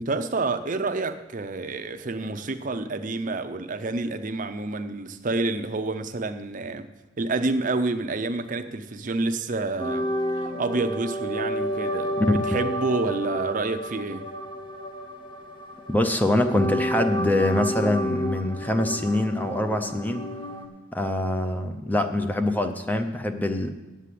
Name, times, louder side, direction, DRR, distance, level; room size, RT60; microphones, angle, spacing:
voice 1, 0.0-6.9 7.2-10.1 10.4-14.3, right 3 dB, 40° right, 8 dB, 0.6 m, -28 dB
sound 1, 9.8-20.7, equal, 25° left, 1.2 m, -30 dB
voice 2, 15.9-20.3 20.9-23.7, left 1 dB, 10° left, 7 dB, 0.6 m, -24 dB
8.6 x 8.3 x 7.6 m, 1.1 s
head